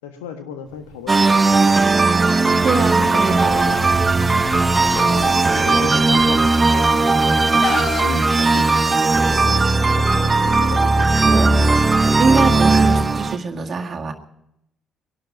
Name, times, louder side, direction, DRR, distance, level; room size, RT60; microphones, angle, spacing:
voice 1, 0.0-1.9 2.3-3.9 4.9-9.6 9.9-11.3, left 7 dB, 80° left, 6 dB, 1.5 m, -35 dB
Walk footsteps, 0.7-8.3, left 1 dB, 25° left, 1.9 m, -36 dB
sound 1, 1.1-13.4, right 3 dB, 25° right, 1.0 m, -17 dB
Chicken rooster, 2.1-3.8 4.2-6.8 7.2-8.0, left 4 dB, 40° left, 1.6 m, -29 dB
voice 2, 2.6-3.9 11.1-11.6 12.2-14.1, right 4 dB, 45° right, 3 dB, 2.0 m, -23 dB
22.5 x 11.5 x 5.4 m, 0.83 s
hypercardioid pair, 50°, 0 cm